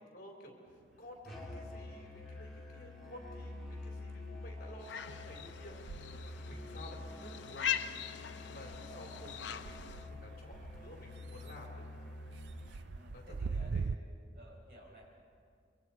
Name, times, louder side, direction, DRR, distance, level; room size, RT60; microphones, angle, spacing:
voice 1, 0.1-0.6 1.0-5.8 6.4-7.7 8.4-11.9 13.1-13.9, left 1 dB, 50° left, 0 dB, 3.9 m, -53 dB
sound 1, 0.7-1.9 2.2-13.9, right 4 dB, 75° right, 0.4 m, -46 dB
Musical instrument, 1.2-13.0, left 2 dB, ahead, 3.4 m, -48 dB
sound 2, 4.8-10.1, left 9 dB, 85° left, 0.7 m, -41 dB
voice 2, 8.7-9.1 12.9-13.8 14.3-15.1, equal, 55° right, -3 dB, 6.8 m, -56 dB
27.0 x 24.0 x 4.7 m, 2.2 s
head